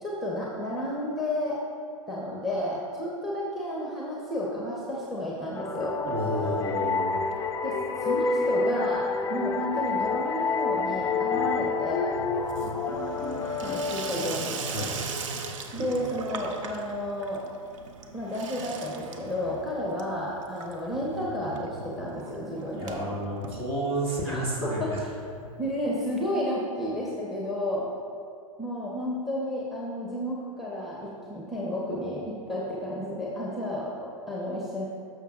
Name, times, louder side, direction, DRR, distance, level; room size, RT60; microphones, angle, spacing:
voice 1, 0.0-1.6 2.1-6.0 7.6-12.1 13.6-14.6 15.7-17.5 18.1-23.0 24.2-25.1 25.6-27.9 28.6-34.8, left 1 dB, ahead, -4 dB, 1.1 m, -32 dB
sound 1, 5.6-15.0, left 4 dB, 15° left, 0.4 m, -28 dB
voice 2, 6.0-7.2 14.7-14.9 22.7-25.0, right 1 dB, 30° right, -3 dB, 1.9 m, -31 dB
Water tap faucet / Sink (filling or washing), 7.2-7.9 8.2-8.8 9.1-24.3 24.7-24.8 25.0-25.1 25.3-25.4 26.4-26.5, right 4 dB, 60° right, 0.8 m, -40 dB
12.5 x 6.4 x 2.5 m, 2.5 s
figure-of-eight pair, 100°, 18 cm